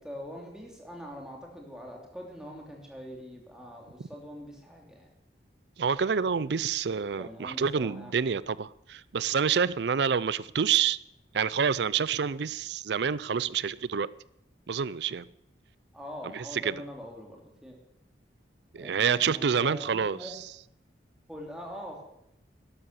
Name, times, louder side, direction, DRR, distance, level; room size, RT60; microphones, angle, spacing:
voice 1, 0.0-5.1 7.2-8.3 15.9-17.8 18.8-20.3 21.3-22.0, equal, 5° right, 2.9 m, -43 dB
voice 2, 5.8-11.0 11.3-14.1 14.7-15.3 16.3-16.8 18.7-20.4, right 6 dB, 70° right, 0.5 m, -28 dB
12.5 x 11.5 x 6.8 m
head